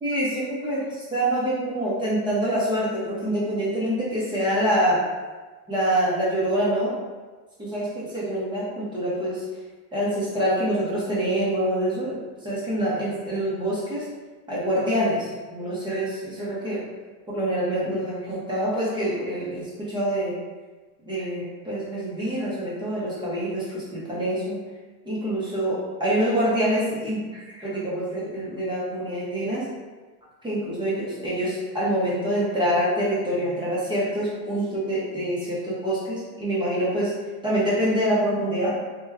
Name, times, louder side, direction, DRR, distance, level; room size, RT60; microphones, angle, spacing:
voice 1, 0.0-5.0 5.7-6.9 7.6-9.4 9.9-14.1 14.5-16.8 17.3-20.4 21.0-24.6 25.1-29.6 30.4-37.1 37.4-38.7, right 1 dB, 10° right, -8 dB, 0.7 m, -26 dB
2.9 x 2.3 x 3.4 m, 1.3 s
supercardioid pair, 135°, 46 cm